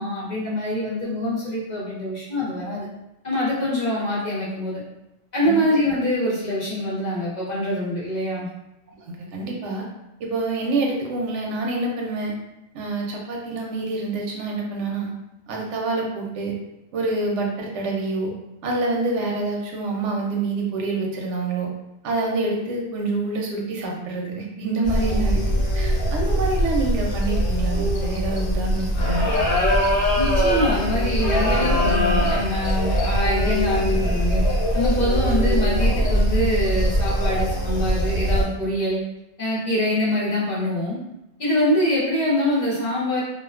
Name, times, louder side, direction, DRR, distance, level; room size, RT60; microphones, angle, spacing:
voice 1, 0.0-2.9 3.2-4.8 5.3-8.5 30.1-34.4 34.7-39.0 39.4-41.0 41.4-43.2, left 1 dB, 45° left, -6 dB, 0.9 m, -24 dB
voice 2, 5.4-5.9 9.0-9.9 10.2-12.4 12.7-15.1 15.5-16.6 16.9-18.3 18.6-21.7 22.0-29.4, right 2 dB, 85° right, -1 dB, 0.9 m, -27 dB
sound 1, 24.8-38.4, equal, 80° left, 1.0 m, -21 dB
2.4 x 2.2 x 2.3 m, 0.91 s
omnidirectional pair, 1.2 m